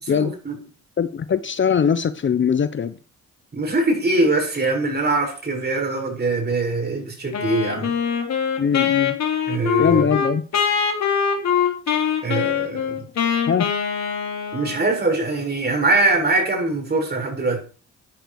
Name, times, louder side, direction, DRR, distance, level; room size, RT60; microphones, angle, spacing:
voice 1, 0.0-0.6 3.5-7.9 9.5-10.1 12.2-13.1 14.5-17.6, right 2 dB, 35° right, 7.3 m, -22 dB
voice 2, 1.0-3.0 8.6-9.1 9.8-10.4 13.5-13.7, left 7 dB, 40° left, 1.0 m, -21 dB
Wind instrument woodwind instrument, 7.3-15.0, left 7 dB, 60° left, 3.6 m, -23 dB
13.5 x 10.0 x 4.9 m
cardioid pair, 90°, 30 cm